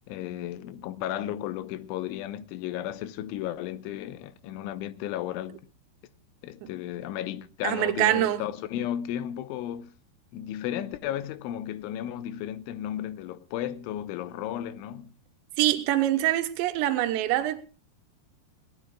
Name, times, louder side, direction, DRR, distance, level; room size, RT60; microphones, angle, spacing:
voice 1, 0.1-5.6 6.4-9.9 10.3-15.1, left 11 dB, 90° left, 3.3 m, -34 dB
voice 2, 7.6-8.4 15.6-17.6, right 13 dB, 80° right, 3.2 m, -24 dB
23.5 x 18.5 x 2.3 m
omnidirectional pair, 5.3 m